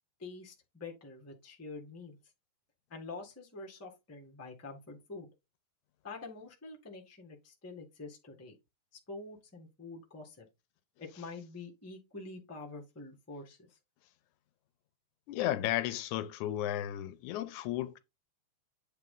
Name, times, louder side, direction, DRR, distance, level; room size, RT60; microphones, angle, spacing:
voice 1, 0.2-2.2 2.9-5.3 6.0-8.5 9.1-10.5 11.0-13.8, left 3 dB, 10° left, 0.8 m, -46 dB
voice 2, 15.3-18.0, left 13 dB, 80° left, 2.0 m, -34 dB
8.6 x 3.7 x 3.8 m
omnidirectional pair, 3.5 m